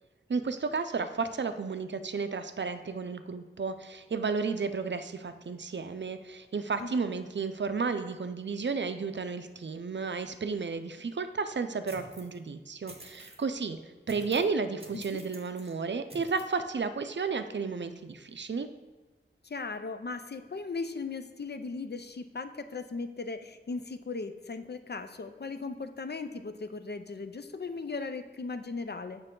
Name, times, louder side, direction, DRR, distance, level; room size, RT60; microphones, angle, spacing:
voice 1, 0.3-13.8 14.1-18.7, right 4 dB, 65° right, 10 dB, 0.4 m, -32 dB
sound 1, 11.9-12.4 12.9-13.4 14.1-14.5 14.8-15.7 16.1-16.5, right 1 dB, 30° right, 1.1 m, -49 dB
voice 2, 19.4-29.2, left 4 dB, 55° left, 9 dB, 0.5 m, -38 dB
6.7 x 5.8 x 3.7 m, 1.2 s
wide cardioid pair, 45°, 20 cm